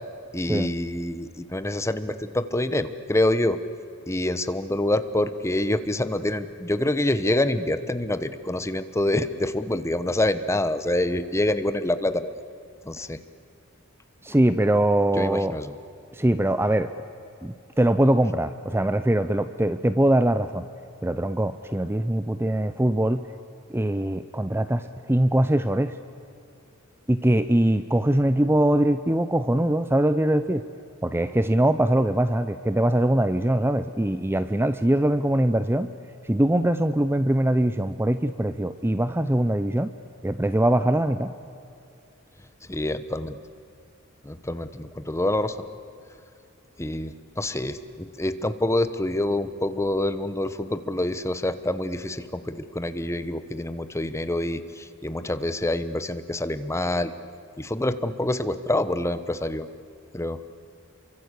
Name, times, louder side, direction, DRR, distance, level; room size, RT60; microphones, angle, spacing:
voice 1, 0.3-3.6 4.1-12.3 12.8-13.2 15.2-15.7 42.7-43.4 44.2-45.6 46.8-57.1 57.6-59.7 60.1-60.4, left 1 dB, 15° left, 11 dB, 1.1 m, -26 dB
voice 2, 14.2-15.5 16.1-16.9 17.4-20.6 21.0-23.2 23.7-25.9 27.1-30.6 31.0-35.9 36.3-39.9 40.2-41.3, right 1 dB, 10° right, 11 dB, 0.6 m, -22 dB
28.5 x 24.0 x 8.4 m, 2.6 s
head